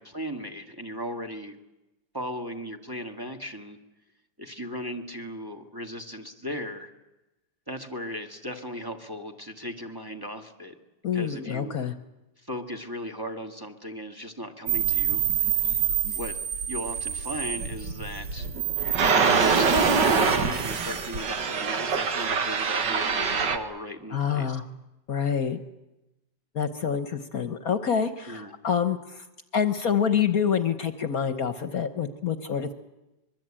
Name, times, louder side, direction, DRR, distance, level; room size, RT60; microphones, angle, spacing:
voice 1, 0.0-1.6 2.1-3.8 4.4-6.9 7.7-10.7 11.1-11.8 12.4-15.5 16.2-16.4 16.7-18.5 19.2-24.6 28.3-28.6, equal, 10° right, 4 dB, 1.9 m, -37 dB
voice 2, 11.0-11.9 24.1-24.6 25.1-25.6 26.5-29.2 29.5-32.7, left 7 dB, 55° left, 10 dB, 1.4 m, -27 dB
sound 1, 14.7-23.6, right 6 dB, 75° right, 2.3 m, -25 dB
Explosion, 19.7-21.5, left 3 dB, 30° right, 3.4 m, -44 dB
25.0 x 23.0 x 8.9 m, 1.0 s
omnidirectional pair, 1.9 m